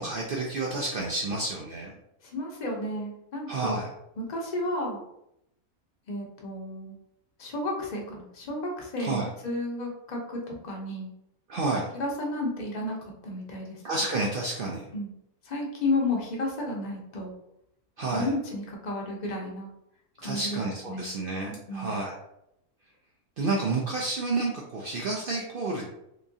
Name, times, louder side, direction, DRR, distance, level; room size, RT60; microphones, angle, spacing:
voice 1, 0.0-1.9 3.5-3.9 9.0-9.3 11.5-11.9 13.8-14.9 18.0-18.3 20.2-22.1 23.4-25.9, right 3 dB, 80° right, -2 dB, 0.5 m, -30 dB
voice 2, 2.2-3.8 4.3-5.0 6.1-6.9 7.4-11.1 12.0-13.0 13.2-13.8 14.9-15.1 15.4-17.3 18.1-19.7 20.2-20.6 20.9-21.1 21.7-21.9, left 2 dB, 40° left, -1 dB, 0.7 m, -32 dB
3.5 x 2.9 x 2.6 m, 0.81 s
omnidirectional pair, 1.5 m